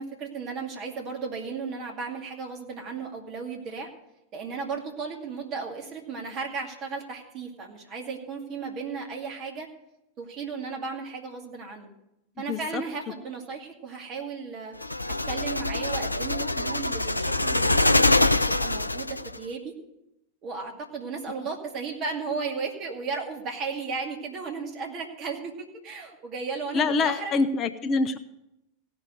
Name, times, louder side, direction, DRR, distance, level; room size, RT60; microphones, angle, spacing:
voice 1, 0.0-3.9 4.3-9.7 10.2-11.9 12.4-14.7 15.3-19.7 20.4-27.4, right 5 dB, 35° right, 1 dB, 2.5 m, -35 dB
voice 2, 12.5-12.8 26.7-28.2, left 4 dB, 30° left, 10 dB, 0.7 m, -25 dB
sound 1, 14.8-19.4, left 2 dB, 85° left, 0.4 m, -24 dB
16.5 x 6.3 x 7.7 m, 0.85 s
figure-of-eight pair, 90°, 0 cm